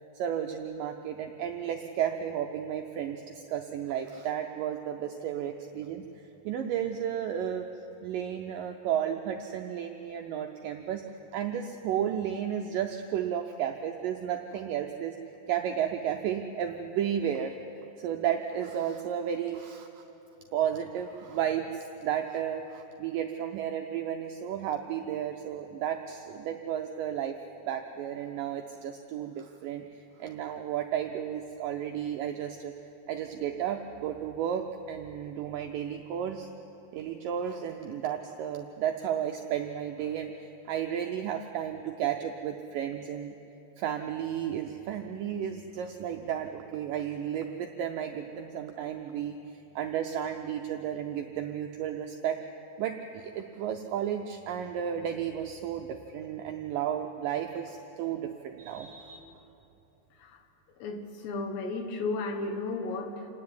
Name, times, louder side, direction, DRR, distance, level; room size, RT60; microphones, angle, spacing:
voice 1, 0.1-7.7 8.0-11.0 11.3-15.2 15.5-17.6 18.0-20.0 20.5-27.4 27.7-29.8 30.2-32.7 33.1-36.5 36.9-43.3 43.8-49.4 49.8-52.4 52.8-59.3, right 9 dB, 85° right, 4 dB, 1.9 m, -33 dB
voice 2, 60.8-63.3, left 3 dB, 85° left, 5 dB, 3.6 m, -34 dB
28.5 x 9.7 x 9.5 m, 2.9 s
omnidirectional pair, 4.7 m